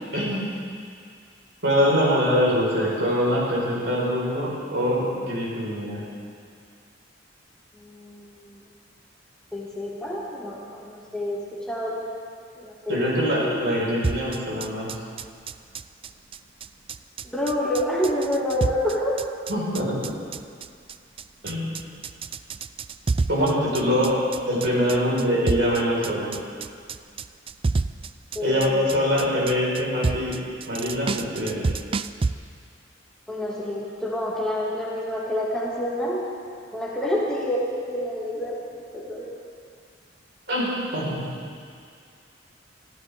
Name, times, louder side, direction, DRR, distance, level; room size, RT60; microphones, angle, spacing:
voice 1, 0.1-0.5 1.6-6.1 12.9-14.9 19.5-20.2 21.4-21.7 23.3-24.2 24.4-26.3 28.4-30.4 30.7-31.7 40.5-41.2, equal, 65° right, -5 dB, 5.1 m, -24 dB
voice 2, 7.7-8.6 9.5-12.0 12.6-13.1 13.4-13.7 17.2-19.2 23.4-23.6 24.8-25.0 28.3-29.0 33.3-36.3 36.7-39.3, left 1 dB, 5° left, -6 dB, 2.4 m, -28 dB
sound 1, 14.0-32.3, right 4 dB, 30° right, 0.3 m, -29 dB
23.5 x 13.5 x 3.7 m, 2.2 s
head